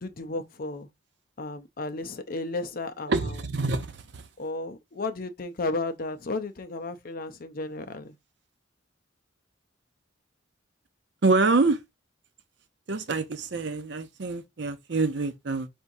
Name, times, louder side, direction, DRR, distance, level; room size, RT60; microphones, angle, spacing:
voice 1, 0.0-0.9 1.4-3.1 4.4-8.2, left 2 dB, 45° left, 0.6 m, -33 dB
voice 2, 3.1-4.3 11.2-11.8 12.9-15.7, right 3 dB, 60° right, 0.6 m, -26 dB
4.5 x 3.5 x 2.6 m
head